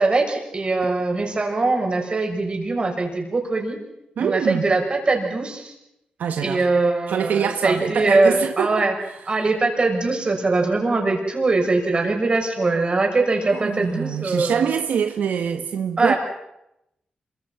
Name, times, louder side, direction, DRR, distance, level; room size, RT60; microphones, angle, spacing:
voice 1, 0.0-3.8 4.2-5.7 6.4-8.9 9.3-14.7 16.0-16.2, right 3 dB, 35° right, 6.4 m, -21 dB
voice 2, 4.2-4.6 6.2-6.7 7.1-9.2 13.5-16.1, right 7 dB, 90° right, 1.3 m, -25 dB
27.0 x 24.5 x 5.9 m
cardioid pair, 80°, 3 cm